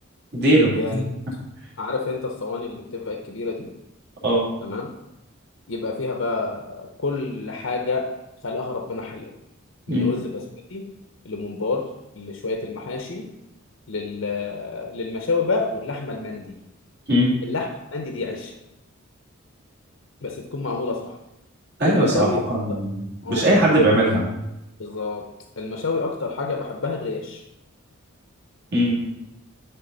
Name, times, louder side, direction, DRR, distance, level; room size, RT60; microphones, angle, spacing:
voice 1, 0.3-1.0 4.2-4.5 9.9-10.1 17.1-17.3 21.8-24.2 28.7-28.9, right 1 dB, 50° right, -6 dB, 2.6 m, -19 dB
voice 2, 1.8-3.7 4.6-4.9 5.7-8.1 8.4-9.3 9.9-10.4 10.7-10.9 11.2-11.8 12.1-13.3 13.9-16.5 17.4-18.5 20.2-21.1 21.8-22.4 22.7-22.8 23.2-23.5 24.8-25.2 25.6-27.4, left 3 dB, 65° left, 2 dB, 0.7 m, -28 dB
11.0 x 4.0 x 3.9 m, 0.91 s
head